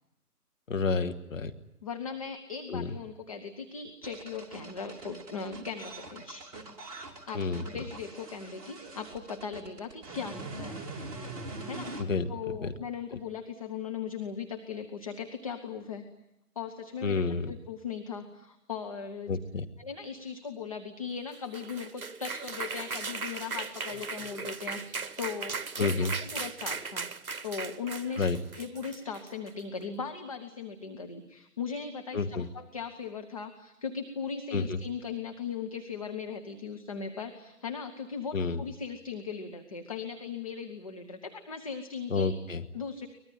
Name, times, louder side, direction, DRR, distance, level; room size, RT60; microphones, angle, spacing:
voice 1, 0.7-1.5 2.7-2.9 7.3-7.6 12.0-12.3 12.6-12.7 17.0-17.5 19.3-19.6 25.8-26.1 28.2-28.4 32.1-32.5 34.5-34.8 38.3-38.6 42.1-42.6, left 4 dB, 55° left, 8 dB, 1.6 m, -29 dB
voice 2, 1.8-6.5 7.3-10.8 11.6-16.0 16.5-19.4 19.8-27.1 27.4-28.3 28.5-42.3 42.7-43.1, left 6 dB, 20° left, 4 dB, 1.0 m, -38 dB
sound 1, 4.0-12.0, right 2 dB, 25° right, 2.9 m, -43 dB
sound 2, 21.3-29.6, right 4 dB, 65° right, 1.2 m, -37 dB
24.0 x 20.5 x 9.2 m, 0.85 s
figure-of-eight pair, 150°, 47 cm